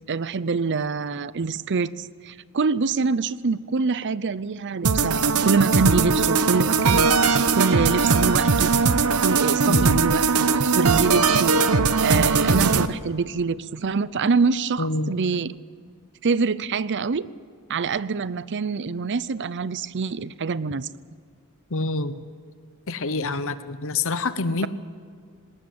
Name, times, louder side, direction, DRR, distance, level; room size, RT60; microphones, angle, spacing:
voice 1, 0.1-7.1 7.5-8.7 9.2-11.5 12.0-15.5 16.2-17.3 17.7-20.9, right 4 dB, 55° right, 18 dB, 0.6 m, -25 dB
sound 1, 4.8-12.9, right 4 dB, 90° right, 0.9 m, -20 dB
voice 2, 9.7-10.0 14.8-15.1 21.7-22.1 22.9-24.7, left 3 dB, 65° left, 12 dB, 1.0 m, -26 dB
20.0 x 19.0 x 8.8 m, 2.1 s
head